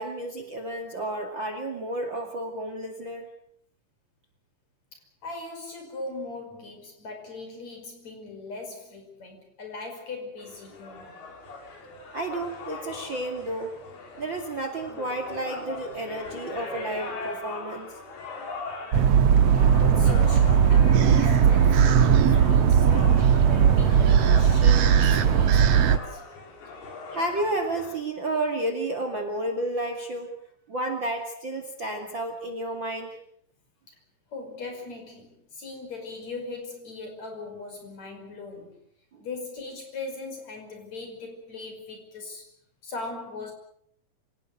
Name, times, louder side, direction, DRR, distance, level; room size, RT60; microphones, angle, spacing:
voice 1, 0.0-3.3 12.1-13.8 14.2-17.9 22.0-22.3 27.1-30.3 30.7-33.2 39.1-39.2, right 1 dB, 35° right, 6 dB, 2.6 m, -31 dB
voice 2, 4.9-11.2 19.7-26.2 33.9-34.0 34.3-38.8 39.2-42.5 42.8-43.5, left 3 dB, 45° left, 4 dB, 6.5 m, -39 dB
sound 1, 10.4-28.0, left 3 dB, 90° left, 6.0 m, -40 dB
sound 2, 18.9-26.0, right 8 dB, 65° right, 1.6 m, -18 dB
26.0 x 18.0 x 7.9 m, 0.66 s
omnidirectional pair, 4.4 m